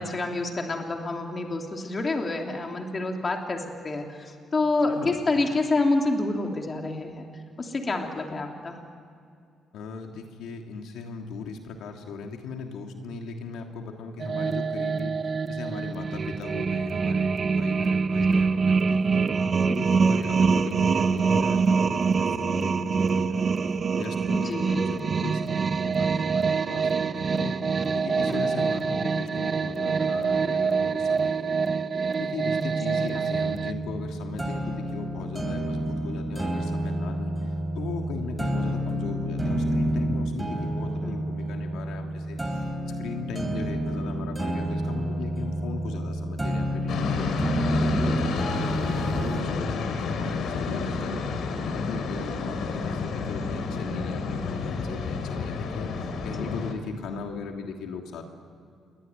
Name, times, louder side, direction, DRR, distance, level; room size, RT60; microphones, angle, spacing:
voice 1, 0.0-7.3 7.6-8.8 18.2-18.4 24.3-24.9 28.3-28.5 32.9-33.3 41.0-41.3 48.0-48.2 56.4-56.5, left 2 dB, 25° left, 2 dB, 3.0 m, -28 dB
voice 2, 4.9-5.4 9.7-15.1 15.5-19.3 19.6-23.5 23.9-27.6 27.9-31.8 32.2-37.3 37.7-42.6 43.0-58.3, left 4 dB, 80° left, 3 dB, 3.1 m, -38 dB
sound 1, 14.2-33.7, right 5 dB, 35° right, 0.8 m, -25 dB
sound 2, 33.3-49.4, right 1 dB, 10° right, 3.7 m, -29 dB
sound 3, 46.9-56.7, left 4 dB, 65° left, 3.5 m, -30 dB
28.5 x 22.5 x 9.2 m, 2.4 s
cardioid pair, 145°, 0 cm